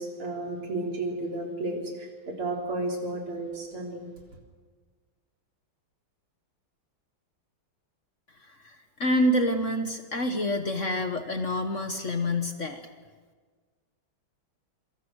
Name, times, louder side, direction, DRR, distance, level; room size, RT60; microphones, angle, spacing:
voice 1, 0.0-4.1, right 2 dB, 80° right, 0 dB, 4.6 m, -33 dB
voice 2, 9.0-12.8, left 1 dB, 40° left, 7 dB, 1.4 m, -27 dB
26.5 x 24.5 x 6.3 m, 1.5 s
omnidirectional pair, 2.3 m